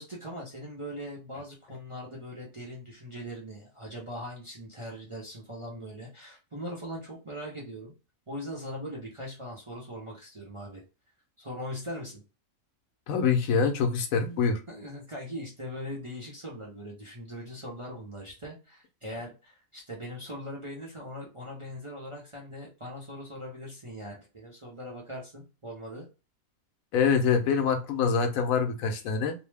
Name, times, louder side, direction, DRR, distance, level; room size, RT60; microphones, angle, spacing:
voice 1, 0.0-7.9 8.3-10.8 11.4-12.2 14.7-26.1, equal, 30° right, 0.6 m, -40 dB
voice 2, 13.1-14.6 26.9-29.3, left 6 dB, 80° left, 1.0 m, -25 dB
2.7 x 2.0 x 3.2 m
omnidirectional pair, 1.4 m